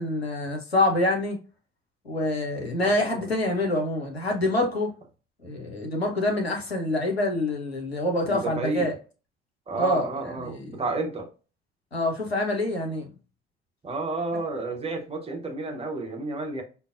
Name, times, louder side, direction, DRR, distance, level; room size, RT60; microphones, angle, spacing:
voice 1, 0.0-1.4 2.1-4.9 5.4-9.0 9.8-10.1 10.4-10.8 11.9-13.1, left 1 dB, 90° left, 0.6 m, -26 dB
voice 2, 2.8-3.3 8.2-8.9 9.7-11.3 13.8-16.6, right 2 dB, 20° right, 0.9 m, -31 dB
5.2 x 2.0 x 2.4 m
figure-of-eight pair, 50°, 30 cm